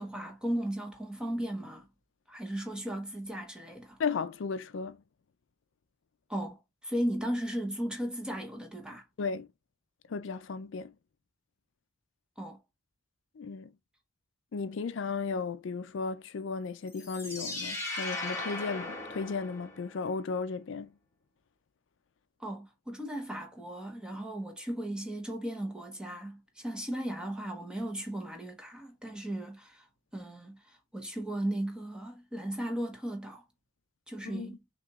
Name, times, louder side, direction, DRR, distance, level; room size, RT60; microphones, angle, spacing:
voice 1, 0.0-1.9 2.3-4.0 6.3-9.0 12.4-12.6 22.4-29.9 30.1-33.4 34.1-34.6, right 1 dB, 5° right, 1.0 m, -36 dB
voice 2, 4.0-5.0 9.2-9.5 10.1-10.9 13.4-13.7 14.5-20.9 34.3-34.5, left 4 dB, 65° left, 0.4 m, -35 dB
sound 1, 16.9-20.0, left 2 dB, 15° left, 1.3 m, -38 dB
5.9 x 2.9 x 2.4 m
head